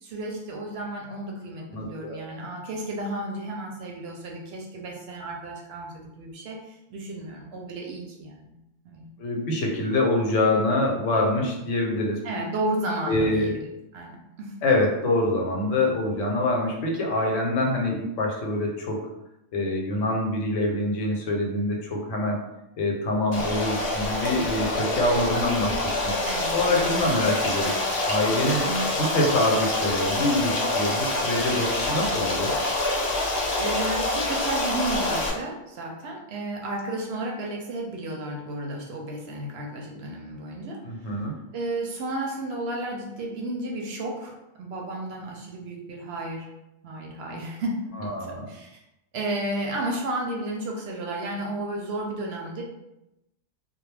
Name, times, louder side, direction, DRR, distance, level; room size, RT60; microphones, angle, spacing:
voice 1, 0.0-8.6 8.8-9.0 12.2-13.6 13.9-14.6 26.2-26.5 28.6-28.9 33.6-40.8 41.1-41.2 41.5-46.5 46.8-48.1 48.5-48.8 49.1-52.6, right 1 dB, 65° right, 0 dB, 0.7 m, -32 dB
voice 2, 1.7-2.2 9.2-12.2 13.1-13.5 14.6-19.1 19.5-22.4 22.8-25.8 26.0-26.1 26.5-28.6 29.0-32.5 40.8-41.4 48.0-48.5, left 1 dB, 85° left, 0 dB, 1.0 m, -25 dB
Stream, 23.3-35.3, left 2 dB, 60° left, 0.8 m, -26 dB
2.3 x 2.1 x 3.1 m, 0.91 s
omnidirectional pair, 1.3 m